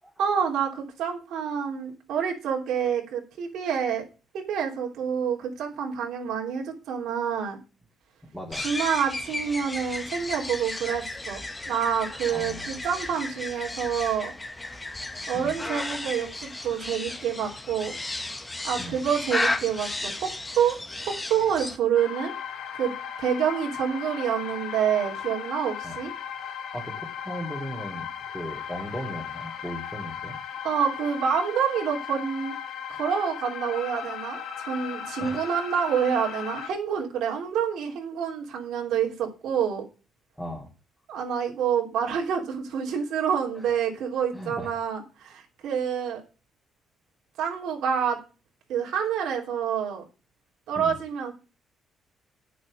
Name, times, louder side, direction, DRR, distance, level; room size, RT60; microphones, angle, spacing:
voice 1, 0.2-4.0 4.3-7.6 8.5-11.4 11.7-14.3 15.3-17.9 18.6-20.8 21.0-22.3 22.8-22.9 23.2-26.1 30.6-32.5 32.9-39.8 41.1-46.2 47.4-48.2 48.7-50.0 50.7-51.3, right 7 dB, 80° right, 0 dB, 3.1 m, -27 dB
voice 2, 8.3-8.7 12.3-12.7 15.3-15.6 18.8-19.0 25.8-26.0 26.4-30.4 35.2-35.5 40.4-40.7 43.5-43.6 44.3-44.8 50.8-50.9, equal, ahead, -4 dB, 3.3 m, -37 dB
sound 1, 8.5-21.8, left 2 dB, 15° left, 1.4 m, -34 dB
sound 2, 21.9-36.7, left 8 dB, 75° left, 1.4 m, -37 dB
8.9 x 6.4 x 6.5 m, 0.32 s
cardioid pair, 90°, 0 cm